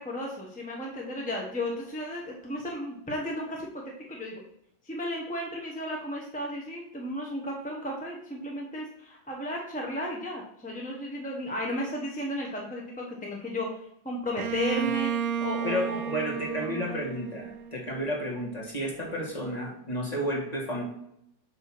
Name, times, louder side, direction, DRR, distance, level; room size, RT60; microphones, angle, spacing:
voice 1, 0.0-4.4 4.8-13.7 14.0-15.1 15.4-16.1 16.6-16.9, left 1 dB, 10° left, -1 dB, 0.6 m, -34 dB
Bowed string instrument, 14.4-18.1, right 8 dB, 80° right, 0.7 m, -32 dB
voice 2, 15.6-20.8, equal, 25° left, -2 dB, 1.4 m, -32 dB
7.8 x 2.8 x 6.0 m, 0.76 s
omnidirectional pair, 2.0 m